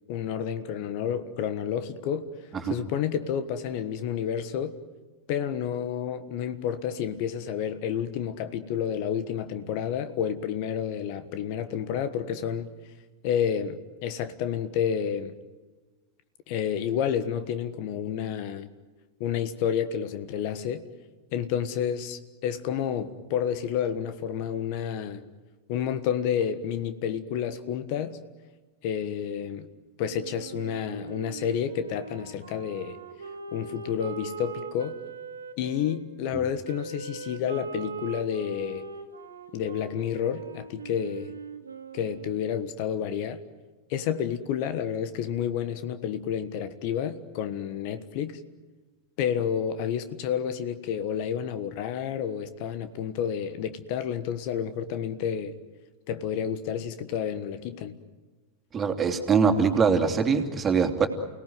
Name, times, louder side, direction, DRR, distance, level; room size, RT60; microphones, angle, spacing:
voice 1, 0.1-2.3 2.7-4.8 5.3-12.7 13.2-15.3 16.5-18.7 19.2-20.8 21.3-25.2 25.7-28.2 28.8-29.7 30.0-33.0 33.5-35.0 35.6-38.8 39.5-41.3 41.9-43.4 43.9-48.4 49.2-55.6 56.1-58.0, left 8 dB, 50° left, 1.4 m, -30 dB
Wind instrument woodwind instrument, 30.1-36.0 36.6-42.5, right 4 dB, 85° right, 2.2 m, -41 dB
voice 2, 58.7-61.1, right 5 dB, 25° right, 2.9 m, -23 dB
29.5 x 18.5 x 9.5 m
figure-of-eight pair, 90°, 0 cm